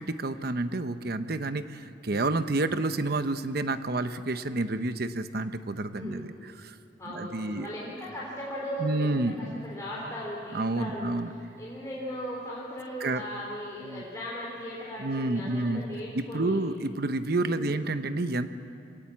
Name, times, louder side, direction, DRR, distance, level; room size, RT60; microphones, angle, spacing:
voice 1, 0.0-6.7 7.1-7.7 8.8-9.6 10.5-11.3 13.0-13.2 13.8-14.0 15.0-15.8 16.1-18.5, right 2 dB, 55° right, 10 dB, 0.9 m, -29 dB
voice 2, 5.9-6.3 7.0-11.1 11.6-16.6 17.5-17.8, equal, 15° left, -6 dB, 3.5 m, -37 dB
25.0 x 18.5 x 7.4 m, 2.5 s
head